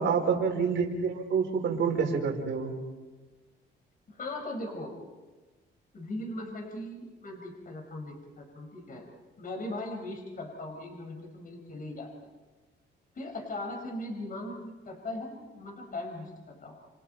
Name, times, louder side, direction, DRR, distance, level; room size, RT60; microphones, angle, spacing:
voice 1, 0.0-2.7, right 5 dB, 70° right, 0 dB, 5.4 m, -27 dB
voice 2, 4.1-4.9 5.9-9.0 9.4-12.1 13.1-16.7, left 1 dB, 45° left, 2 dB, 5.9 m, -39 dB
30.0 x 27.5 x 4.6 m, 1.3 s
cardioid pair, 90°, 20 cm